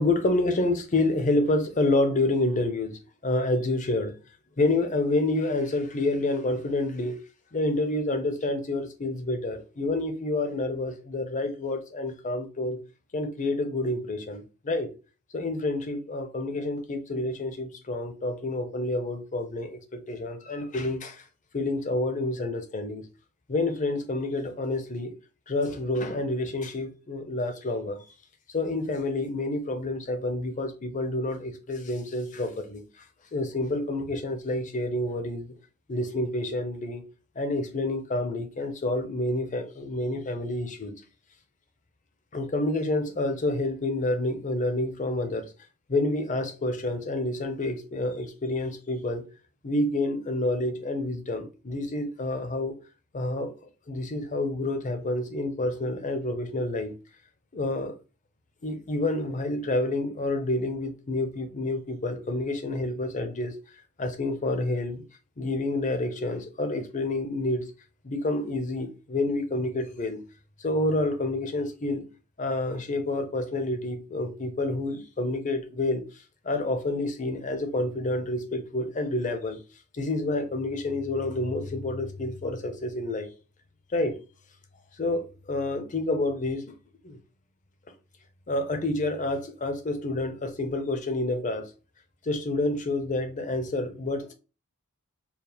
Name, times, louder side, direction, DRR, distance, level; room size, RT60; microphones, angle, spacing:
voice 1, 0.0-4.1 4.6-7.2 7.5-12.8 13.1-14.9 15.3-21.2 21.5-23.1 23.5-25.1 25.5-28.0 28.5-32.8 33.3-35.6 35.9-37.0 37.4-40.9 42.3-45.5 45.9-49.2 49.6-52.8 53.1-53.5 53.9-57.0 57.5-57.9 58.6-63.5 64.0-65.0 65.4-67.7 68.0-70.2 70.6-72.1 72.4-76.0 76.4-79.6 79.9-83.3 83.9-84.2 85.0-86.7 87.0-87.2 88.5-91.7 92.2-94.3, left 2 dB, 35° left, 0.7 m, -28 dB
4.7 x 2.0 x 3.4 m
head